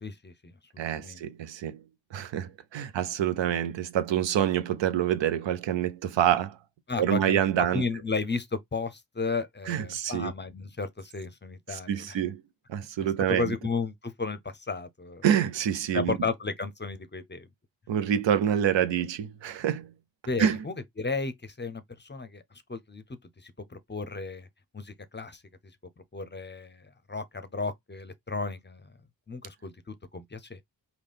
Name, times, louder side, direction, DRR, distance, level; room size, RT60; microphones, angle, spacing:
voice 1, 0.0-1.2 6.9-7.4 7.7-12.2 13.3-15.2 15.9-17.5 20.3-22.4 22.7-23.0 23.4-24.5 24.7-25.4 26.1-28.9 29.3-30.6, left 4 dB, 25° left, 0.6 m, -34 dB
voice 2, 0.8-1.8 2.1-6.6 7.0-7.8 9.7-10.3 11.7-12.4 12.7-13.5 15.2-16.2 17.9-19.9 20.4-20.6, right 10 dB, 70° right, 0.6 m, -27 dB
3.8 x 2.3 x 3.3 m
cardioid pair, 40°, 46 cm